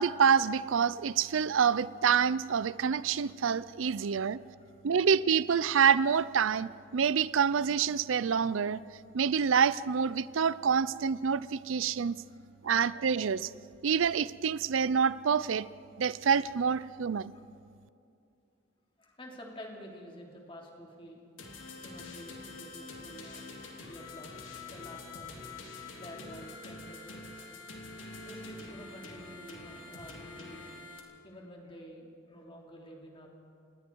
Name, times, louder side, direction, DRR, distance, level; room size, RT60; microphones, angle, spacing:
voice 1, 0.0-4.4 4.8-8.8 9.1-12.2 12.6-13.5 13.8-15.7 16.0-17.3, right 7 dB, 85° right, 18 dB, 0.5 m, -27 dB
voice 2, 4.6-5.1 12.0-12.8 17.3-17.4 19.0-21.2 21.8-23.5 23.8-24.4 24.7-25.4 25.9-27.5 28.2-30.7 31.2-33.3, equal, 25° left, 0 dB, 3.0 m, -49 dB
sound 1, 21.4-31.0, left 3 dB, 85° left, 3.1 m, -46 dB
28.5 x 20.0 x 4.6 m, 2.6 s
head